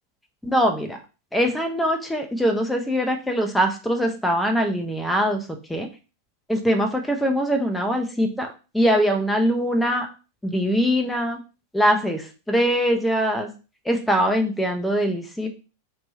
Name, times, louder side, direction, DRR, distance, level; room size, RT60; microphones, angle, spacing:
voice 1, 0.5-1.0 1.3-5.4 5.7-5.9 6.5-8.5 8.7-10.1 10.4-11.4 11.7-13.5 13.9-15.5, equal, 5° left, 3 dB, 0.5 m, -22 dB
2.9 x 2.2 x 4.0 m, 0.32 s
figure-of-eight pair, 90°, 0 cm